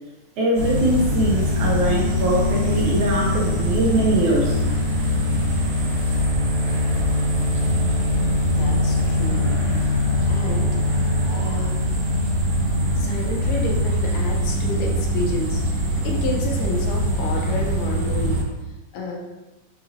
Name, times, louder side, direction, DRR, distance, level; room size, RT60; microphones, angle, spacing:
voice 1, 0.4-4.6, right 1 dB, 75° right, -3 dB, 1.9 m, -22 dB
sound 1, 0.5-18.4, left 1 dB, 60° right, 2.2 m, -22 dB
voice 2, 8.6-9.5 10.3-10.8 11.3-11.7 13.0-18.4 18.9-19.2, left 2 dB, 80° left, 0 dB, 2.2 m, -30 dB
5.7 x 2.7 x 2.6 m, 1.1 s
omnidirectional pair, 3.8 m